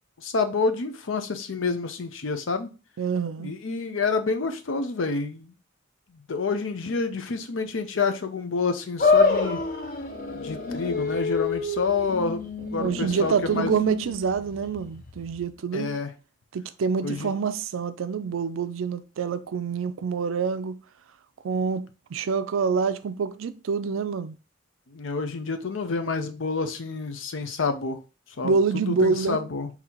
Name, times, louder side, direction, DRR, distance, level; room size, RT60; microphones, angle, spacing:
voice 1, 0.2-2.7 3.4-5.5 6.3-9.6 10.3-12.4 12.7-13.7 15.7-16.1 17.0-17.3 24.9-28.0 28.4-28.5 28.9-29.7, left 4 dB, 80° left, 0.6 m, -28 dB
voice 2, 3.0-3.5 12.6-15.9 16.5-20.8 21.4-24.4 28.4-29.4, right 5 dB, 85° right, 0.4 m, -26 dB
sound 1, 9.0-15.4, left 4 dB, 45° left, 0.8 m, -27 dB
3.9 x 2.8 x 4.3 m
head